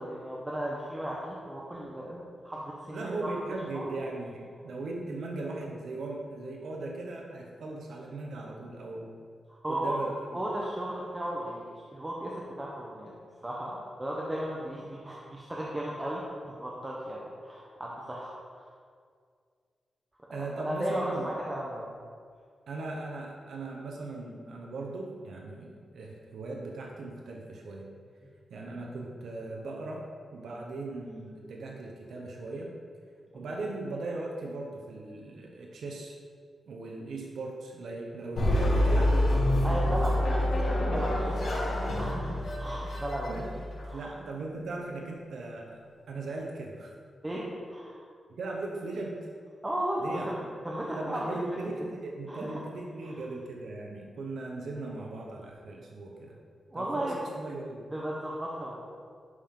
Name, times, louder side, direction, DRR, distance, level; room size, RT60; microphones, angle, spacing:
voice 1, 0.0-3.3 3.7-3.9 9.5-10.0 10.3-13.2 13.4-18.7 20.3-21.9 33.3-33.4 39.6-41.6 41.9-43.4 43.9-44.1 47.2-48.0 49.6-50.4 50.6-51.4 52.3-52.6 53.0-53.1 56.7-57.2 57.9-59.0, right 1 dB, 15° right, -5 dB, 0.8 m, -35 dB
voice 2, 2.9-9.1 9.7-10.1 20.3-21.3 22.7-27.9 28.5-30.0 30.3-32.7 33.3-36.1 36.7-39.7 43.3-43.5 43.9-45.8 46.1-46.9 48.3-49.3 50.0-50.5 50.9-56.4 56.7-57.8, right 2 dB, 80° right, -1 dB, 1.0 m, -38 dB
sound 1, 38.4-43.8, left 1 dB, 90° left, 2.4 m, -27 dB
11.0 x 5.6 x 3.8 m, 2.1 s
wide cardioid pair, 180°, 0 cm